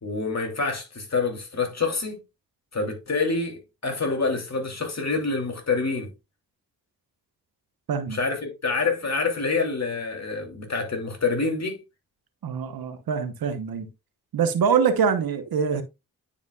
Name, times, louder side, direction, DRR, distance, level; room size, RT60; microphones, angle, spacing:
voice 1, 0.0-2.2 2.7-6.1 8.1-11.8, left 4 dB, 45° left, 2.8 m, -27 dB
voice 2, 12.4-13.9 14.3-15.8, right 6 dB, 75° right, 1.0 m, -24 dB
9.7 x 5.1 x 2.3 m
supercardioid pair, 40°, 37 cm